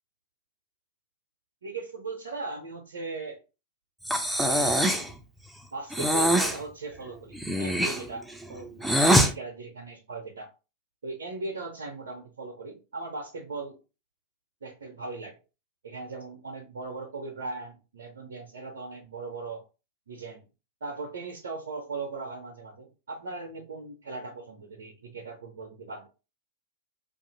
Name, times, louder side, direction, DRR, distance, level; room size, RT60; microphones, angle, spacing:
voice 1, 1.6-3.4 4.5-5.2 5.7-10.5 11.0-13.8 14.6-15.4 15.8-19.6 20.1-20.5 20.8-26.1, right 3 dB, 65° right, 2 dB, 0.5 m, -38 dB
Breathing, 4.1-5.1 5.9-6.6 7.3-9.3, equal, 5° right, 0.4 m, -23 dB
2.5 x 2.3 x 2.8 m, 0.30 s
figure-of-eight pair, 90°, 0 cm